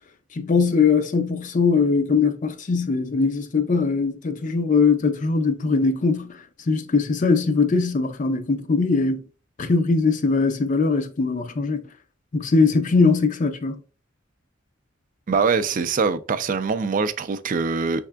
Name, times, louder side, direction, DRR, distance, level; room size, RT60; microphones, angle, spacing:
voice 1, 0.3-9.2 9.6-11.8 12.3-13.8, left 4 dB, 40° left, 0.4 m, -21 dB
voice 2, 15.3-18.1, right 5 dB, 40° right, 0.4 m, -23 dB
5.8 x 3.5 x 2.2 m
head